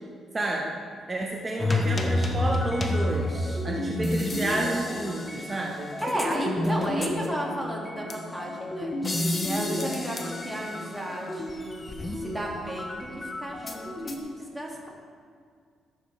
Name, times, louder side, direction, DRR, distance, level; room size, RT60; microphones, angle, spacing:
voice 1, 0.3-0.7 1.1-5.9 6.6-6.8, right 2 dB, 30° right, -1 dB, 1.0 m, -30 dB
sound 1, 1.6-14.2, left 1 dB, 25° left, 1.0 m, -30 dB
voice 2, 6.0-11.9 12.2-14.9, right 1 dB, 10° right, -2 dB, 2.0 m, -33 dB
14.0 x 6.7 x 3.3 m, 2.1 s
cardioid pair, 90°, 0 cm